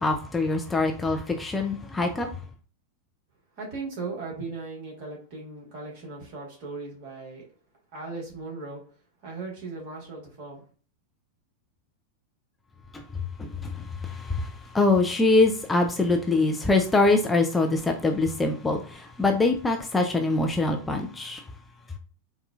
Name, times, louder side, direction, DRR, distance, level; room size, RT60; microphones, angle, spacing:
voice 1, 0.0-2.3 12.9-13.0 13.4-21.4, left 3 dB, 10° left, 0.4 m, -24 dB
voice 2, 3.6-7.5 7.9-8.8 9.2-10.6, right 3 dB, 45° right, 1.4 m, -37 dB
4.1 x 2.3 x 2.3 m
figure-of-eight pair, 90°, 0 cm